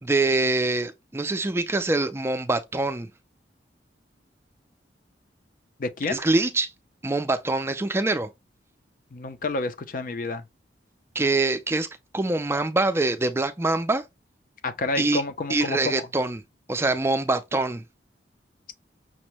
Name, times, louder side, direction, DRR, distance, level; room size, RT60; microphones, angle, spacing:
voice 1, 0.0-3.1 6.1-6.7 7.0-8.3 11.2-11.9 12.1-14.0 15.0-15.2 15.5-16.4 16.7-17.8, right 2 dB, 15° right, 0.4 m, -24 dB
voice 2, 5.8-6.2 9.1-10.4 14.6-16.0, left 3 dB, 50° left, 0.5 m, -29 dB
6.0 x 2.1 x 2.9 m
head